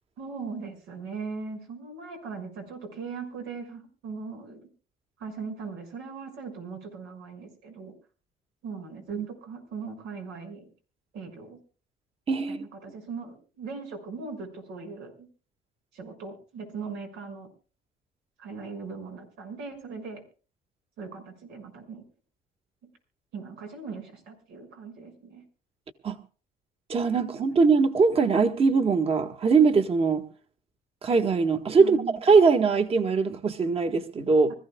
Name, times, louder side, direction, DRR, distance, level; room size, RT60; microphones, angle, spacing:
voice 1, 0.2-4.7 5.2-7.9 8.6-10.7 11.1-11.6 12.5-15.3 15.9-17.5 18.4-20.2 21.0-22.0 23.3-25.4 31.8-32.2, right 4 dB, 90° right, 4 dB, 6.1 m, -39 dB
voice 2, 26.9-30.2 31.0-34.5, right 4 dB, 35° right, 8 dB, 1.6 m, -22 dB
25.5 x 15.0 x 2.3 m, 0.37 s
cardioid pair, 110°, 17 cm